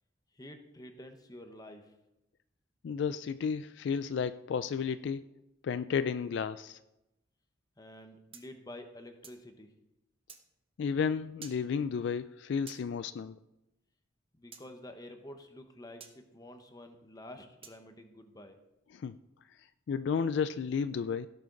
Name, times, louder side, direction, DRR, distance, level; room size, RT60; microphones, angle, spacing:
voice 1, 0.3-1.9 7.8-9.7 14.4-18.6, left 1 dB, 20° left, 6 dB, 1.0 m, -49 dB
voice 2, 2.8-5.2 5.6-6.8 10.8-13.4 18.9-19.1 19.9-21.3, left 6 dB, 60° left, 13 dB, 0.3 m, -32 dB
sound 1, 8.3-9.5 10.3-10.4 11.4-11.6 12.7-12.8 14.5-14.7 16.0-16.2 17.6-17.8, right 6 dB, 30° right, 1.0 m, -50 dB
17.0 x 6.6 x 3.9 m, 0.92 s
head